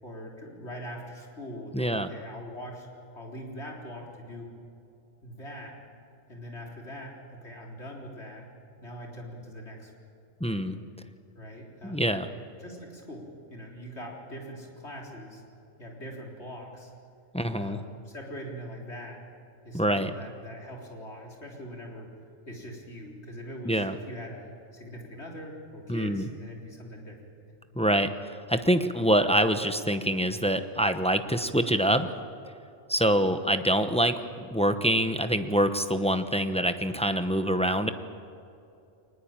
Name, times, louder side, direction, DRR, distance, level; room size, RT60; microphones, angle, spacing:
voice 1, 0.0-2.9 3.1-4.5 5.2-5.8 6.3-8.5 8.8-9.9 10.5-10.7 11.4-12.0 12.6-15.4 15.8-16.9 17.5-19.2 19.6-22.1 22.5-27.4, equal, 55° left, -1 dB, 4.1 m, -42 dB
voice 2, 1.7-2.1 10.4-10.8 11.8-12.3 17.3-17.8 19.7-20.1 23.6-23.9 25.9-26.3 27.7-32.1 32.9-37.9, right 1 dB, 5° left, 8 dB, 0.8 m, -25 dB
23.0 x 20.0 x 8.9 m, 2.7 s
omnidirectional pair, 1.4 m